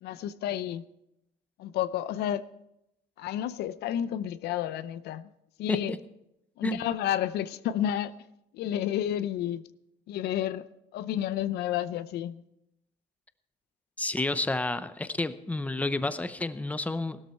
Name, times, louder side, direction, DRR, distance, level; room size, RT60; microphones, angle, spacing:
voice 1, 0.0-0.8 1.6-2.4 3.2-5.3 5.6-5.9 6.6-8.2 8.5-9.6 10.1-10.6 10.9-12.4, left 11 dB, 75° left, 0.6 m, -31 dB
voice 2, 14.0-17.2, left 2 dB, 10° left, 0.7 m, -30 dB
16.0 x 13.0 x 4.5 m
cardioid pair, 110°, 17 cm